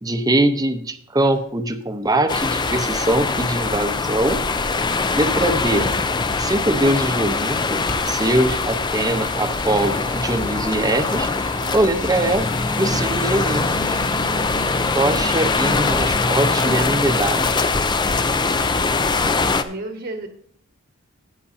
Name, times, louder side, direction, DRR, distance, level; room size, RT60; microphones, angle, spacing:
voice 1, 0.0-4.4 5.1-5.9 6.4-11.3 11.7-12.5 12.8-14.0 14.9-17.7, right 1 dB, 15° right, 7 dB, 0.8 m, -22 dB
sound 1, 1.3-19.4, left 1 dB, 40° left, 2.3 m, -44 dB
sound 2, 2.3-19.6, left 3 dB, 20° left, 0.4 m, -22 dB
sound 3, 9.1-16.4, left 2 dB, 75° left, 5.3 m, -41 dB
voice 2, 11.6-11.9 19.6-20.3, right 2 dB, 55° right, 4 dB, 1.3 m, -32 dB
14.0 x 9.2 x 2.7 m, 0.65 s
head